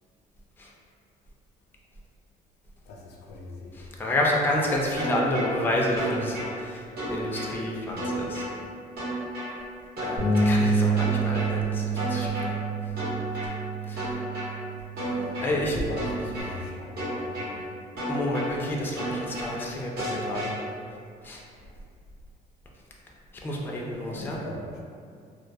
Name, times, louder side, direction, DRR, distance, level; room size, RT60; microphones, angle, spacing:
voice 1, 2.9-4.0 15.7-17.6 21.6-21.7 24.1-24.8, left 2 dB, 75° left, 0 dB, 0.4 m, -40 dB
voice 2, 3.7-8.5 10.0-12.6 13.9-14.2 15.0-15.8 18.1-20.5 21.2-21.4 23.4-24.4, left 1 dB, 10° left, -2 dB, 0.3 m, -29 dB
sound 1, 5.0-5.5 6.0-6.5 7.0-7.5 8.0-8.5 9.0-9.5 10.0-10.5 11.0-11.5 12.0-12.5 13.0-13.5 14.0-14.5 15.0-15.5 16.0-16.5 17.0-17.5 18.0-18.5 19.0-19.5 20.0-20.5, equal, 60° right, 1.0 m, -32 dB
Bass guitar, 10.2-16.4, right 3 dB, 80° right, 1.3 m, -28 dB
2.2 x 2.2 x 2.5 m, 2.3 s
cardioid pair, 110°, 17 cm